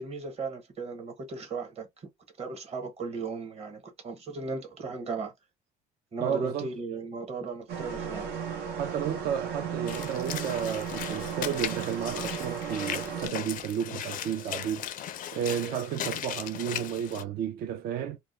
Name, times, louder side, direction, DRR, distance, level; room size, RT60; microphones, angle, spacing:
voice 1, 0.0-2.1 2.4-5.3 6.1-8.3, right 4 dB, 40° right, 1.0 m, -36 dB
voice 2, 6.2-6.7 8.8-14.9 15.3-18.2, right 9 dB, 60° right, 0.4 m, -32 dB
sound 1, 7.7-13.3, right 7 dB, 90° right, 0.8 m, -35 dB
Walk footsteps / Splash splatter, 9.9-17.2, left 10 dB, 55° left, 0.4 m, -37 dB
2.2 x 2.1 x 3.0 m
cardioid pair, 110°, 17 cm